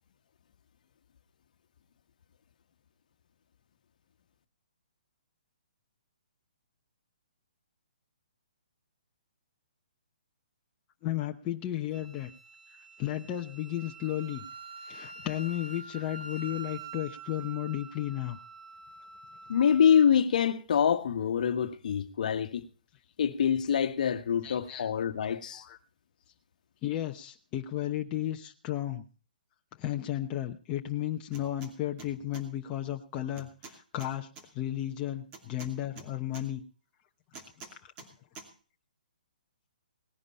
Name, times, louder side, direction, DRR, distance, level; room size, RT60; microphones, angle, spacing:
voice 1, 11.0-12.3 13.0-14.5 14.9-18.4 24.4-24.9 25.5-25.8 26.8-29.1 29.7-34.3 34.5-36.6 37.7-37.9, left 13 dB, 25° left, 1.0 m, -34 dB
Wind instrument woodwind instrument, 11.9-20.1, right 4 dB, 65° right, 1.8 m, -46 dB
voice 2, 19.5-22.6 23.2-25.6, left 8 dB, 60° left, 1.4 m, -25 dB
sound 1, 31.3-31.7 32.0-32.4 33.4-34.5 35.3-36.5 37.3-38.1 38.4-38.5, right 4 dB, 25° right, 2.6 m, -47 dB
18.5 x 10.5 x 4.3 m
hypercardioid pair, 150°, 5 cm